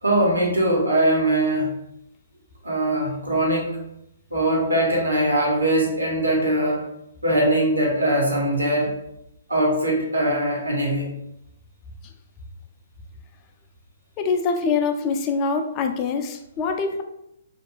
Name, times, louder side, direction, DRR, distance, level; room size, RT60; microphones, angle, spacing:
voice 1, 0.0-1.7 2.6-3.8 4.3-6.8 7.2-8.9 9.5-11.1, right 1 dB, 90° right, -2 dB, 1.0 m, -21 dB
voice 2, 14.2-17.0, left 5 dB, 30° left, 5 dB, 0.3 m, -24 dB
2.5 x 2.2 x 3.0 m, 0.79 s
figure-of-eight pair, 125°, 0 cm